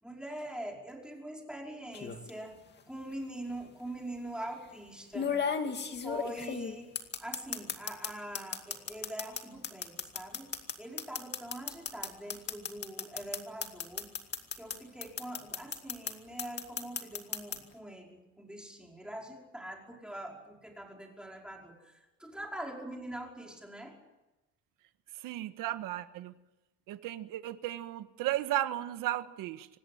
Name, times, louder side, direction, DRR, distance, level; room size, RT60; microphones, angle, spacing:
voice 1, 0.0-2.6 2.9-5.3 6.0-6.9 7.2-14.1 14.6-24.0, right 1 dB, ahead, 0 dB, 5.2 m, -43 dB
sound 1, 1.9-2.3 3.5-3.6 5.1-8.1 8.3-14.7 15.0-16.1 16.4-17.6, left 6 dB, 30° left, 2.3 m, -34 dB
voice 2, 25.2-26.3 26.9-29.7, right 14 dB, 70° right, 10 dB, 1.7 m, -34 dB
26.0 x 19.0 x 9.5 m, 0.99 s
cardioid pair, 155°, 33 cm